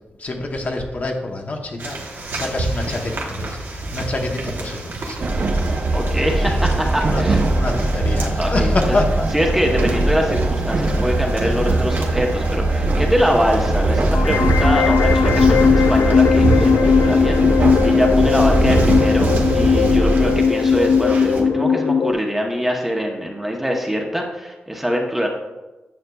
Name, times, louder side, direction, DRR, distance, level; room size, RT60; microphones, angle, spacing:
voice 1, 0.2-5.3 6.4-6.5 7.1-9.3 18.4-18.6, left 2 dB, 45° left, 2 dB, 0.9 m, -26 dB
sound 1, 1.8-21.4, right 2 dB, 65° right, 1.2 m, -29 dB
Train, 5.2-20.4, right 2 dB, 45° right, 0.7 m, -20 dB
voice 2, 5.9-7.4 8.4-8.7 9.3-25.3, equal, 5° right, 0 dB, 0.9 m, -23 dB
sound 2, 14.1-22.1, left 6 dB, 70° left, 0.3 m, -17 dB
9.3 x 6.4 x 2.3 m, 1.1 s
wide cardioid pair, 120°, 4 cm